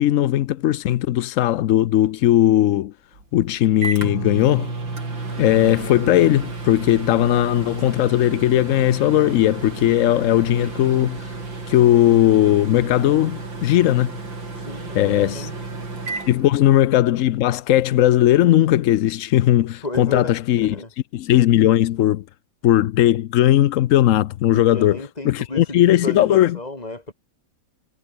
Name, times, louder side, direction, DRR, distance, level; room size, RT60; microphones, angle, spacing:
voice 1, 0.0-2.9 3.3-4.7 5.4-11.3 11.7-14.2 14.9-15.5 16.3-20.7 21.1-22.2 22.6-25.0 25.2-26.6, left 13 dB, 80° left, 0.7 m, -18 dB
Microwave oven, 3.1-17.2, right 3 dB, 85° right, 5.7 m, -32 dB
voice 2, 14.5-15.5 16.2-16.7 19.8-20.9 24.5-27.1, left 2 dB, 20° left, 3.6 m, -33 dB
omnidirectional pair, 2.0 m